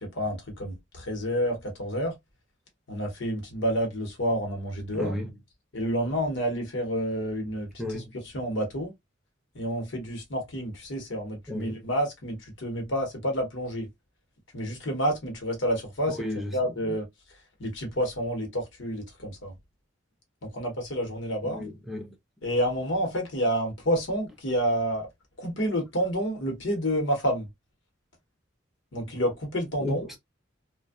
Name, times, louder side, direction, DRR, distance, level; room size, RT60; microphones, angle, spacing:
voice 1, 0.0-2.1 2.9-5.1 5.7-8.9 9.5-13.9 14.5-16.3 16.5-17.1 17.6-19.5 20.4-21.7 22.4-25.1 25.4-27.5 28.9-30.1, equal, 65° left, 0.9 m, -29 dB
voice 2, 4.9-5.3 7.8-8.1 11.5-11.7 16.1-16.5 21.4-22.1 29.8-30.2, left 1 dB, ahead, 0.6 m, -33 dB
2.6 x 2.1 x 2.3 m
head